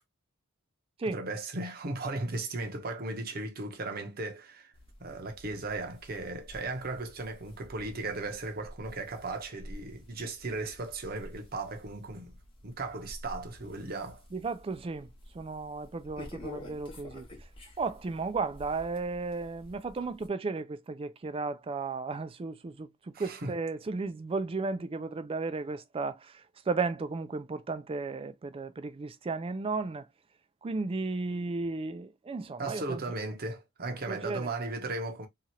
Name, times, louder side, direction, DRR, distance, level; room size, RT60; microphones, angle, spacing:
voice 1, 1.1-4.7 5.0-12.4 12.6-14.2 23.1-23.5 32.6-35.3, right 2 dB, 45° right, 0.7 m, -36 dB
sound 1, 4.7-20.3, left 1 dB, 25° left, 0.8 m, -50 dB
voice 2, 14.3-15.1 15.3-17.3 17.8-30.1 30.6-33.0 34.1-34.5, right 3 dB, 25° right, 0.3 m, -34 dB
2.8 x 2.4 x 2.9 m
head